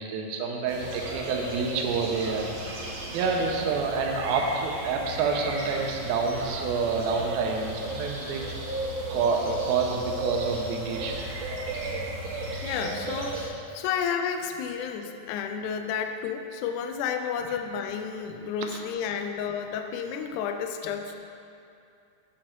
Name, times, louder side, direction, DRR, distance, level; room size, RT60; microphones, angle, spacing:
voice 1, 0.0-2.5 2.8-8.4 9.1-11.3, right 4 dB, 85° right, 1 dB, 2.7 m, -28 dB
sound 1, 0.7-13.5, right 2 dB, 65° right, 3.1 m, -35 dB
voice 2, 12.6-21.2, left 7 dB, 85° left, 6 dB, 1.8 m, -31 dB
8.9 x 8.4 x 4.5 m, 2.6 s
omnidirectional pair, 4.2 m